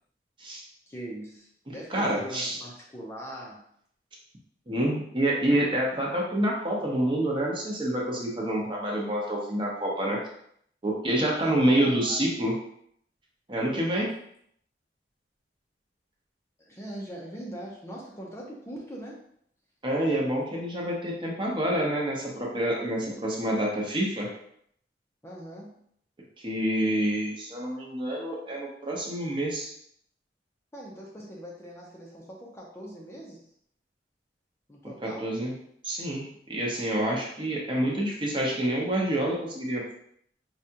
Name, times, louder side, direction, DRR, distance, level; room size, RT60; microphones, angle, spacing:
voice 1, 0.9-3.6 11.2-12.2 13.9-14.1 16.6-19.2 25.2-25.7 30.7-33.4 34.7-35.3 37.8-38.0, right 1 dB, 15° left, -3 dB, 0.5 m, -41 dB
voice 2, 1.7-2.6 4.7-10.2 10.8-12.5 13.5-14.1 19.8-24.3 26.4-29.7 35.2-35.5 35.8-39.8, right 1 dB, 30° right, -3 dB, 0.8 m, -27 dB
4.8 x 2.3 x 2.8 m, 0.67 s
head